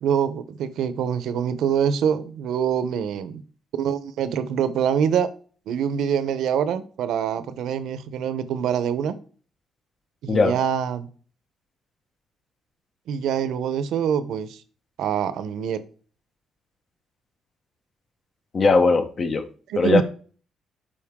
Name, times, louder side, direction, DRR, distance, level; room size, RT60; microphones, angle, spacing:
voice 1, 0.0-3.4 3.7-5.3 5.7-9.1 10.2-11.1 13.1-14.6 15.0-15.8 19.7-20.0, right 8 dB, 80° right, 0.8 m, -25 dB
voice 2, 18.5-19.5 19.8-20.0, left 3 dB, 45° left, 1.2 m, -19 dB
12.0 x 4.5 x 3.7 m
cardioid pair, 90°, 0 cm